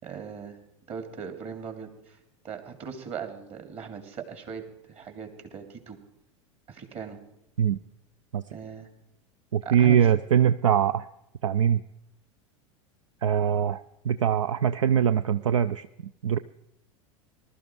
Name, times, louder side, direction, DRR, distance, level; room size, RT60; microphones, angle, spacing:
voice 1, 0.0-0.6 0.9-2.2 2.4-6.0 6.7-7.2 8.5-8.9 9.6-10.1, right 6 dB, 35° right, 6 dB, 3.0 m, -39 dB
voice 2, 9.5-11.1 11.4-11.8 13.2-15.9 16.2-16.4, right 9 dB, 70° right, 14 dB, 0.5 m, -22 dB
20.0 x 13.0 x 4.7 m, 0.83 s
figure-of-eight pair, 85°, 17 cm